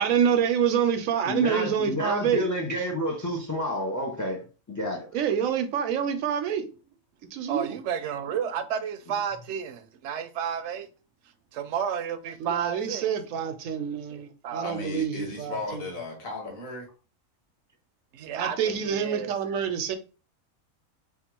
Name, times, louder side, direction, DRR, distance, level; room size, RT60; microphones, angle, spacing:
voice 1, 0.0-2.4 5.1-6.7 7.3-7.8 12.4-15.8 18.3-20.0, right 8 dB, 90° right, 1.0 m, -27 dB
voice 2, 1.3-4.4 4.7-5.1, equal, 25° left, 0.4 m, -29 dB
voice 3, 7.5-10.9 11.5-13.1 14.4-14.8 18.1-19.3, right 8 dB, 70° right, 0.8 m, -31 dB
voice 4, 14.6-16.9, left 3 dB, 90° left, 1.8 m, -35 dB
3.6 x 2.3 x 4.4 m
omnidirectional pair, 1.4 m